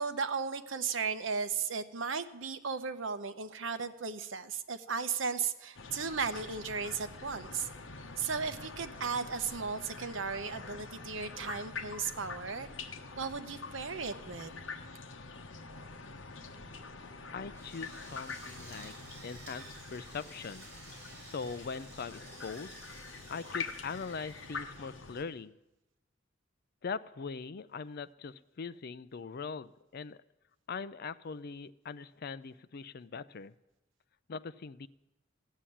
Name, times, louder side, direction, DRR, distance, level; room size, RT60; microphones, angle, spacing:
voice 1, 0.0-7.7 8.2-12.7 13.2-14.5, right 5 dB, 75° right, 10 dB, 0.9 m, -35 dB
sound 1, 5.7-25.2, left 4 dB, 70° left, 1.1 m, -45 dB
voice 2, 17.3-18.9 19.2-20.7 21.2-22.8 23.3-25.5 26.8-30.2 30.7-33.5 34.3-34.9, left 5 dB, 50° left, 15 dB, 0.5 m, -41 dB
Drill, 17.5-25.4, right 2 dB, 60° right, 5.7 m, -53 dB
15.0 x 7.5 x 10.0 m, 0.95 s
head